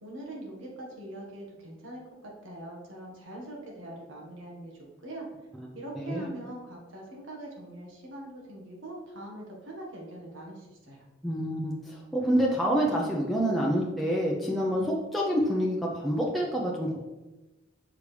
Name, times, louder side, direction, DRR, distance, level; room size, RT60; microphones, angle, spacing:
voice 1, 0.0-5.3 5.7-11.0, right 1 dB, 80° right, -2 dB, 1.6 m, -42 dB
voice 2, 6.0-6.3 11.2-17.0, equal, ahead, -4 dB, 0.6 m, -27 dB
6.7 x 4.8 x 3.3 m, 1.1 s
head